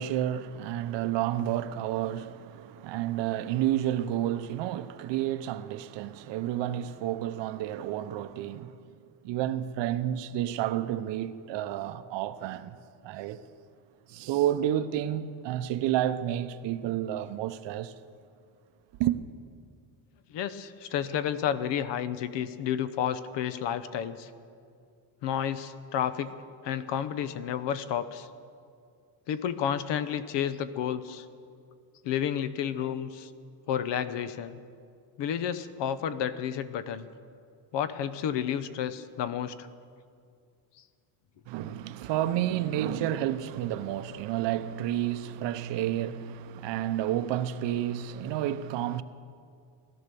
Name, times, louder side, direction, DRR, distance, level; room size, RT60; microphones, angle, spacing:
voice 1, 0.0-8.9 9.2-12.8 13.0-13.4 14.1-17.9 19.0-19.2 41.5-49.0, right 12 dB, 60° right, 0.8 m, -30 dB
voice 2, 20.3-24.3 25.2-26.3 26.6-28.3 29.3-31.2 32.0-33.3 33.7-34.6 35.2-37.1 37.7-39.7, left 9 dB, 60° left, 0.9 m, -31 dB
16.5 x 12.5 x 6.9 m
cardioid pair, 145°, 49 cm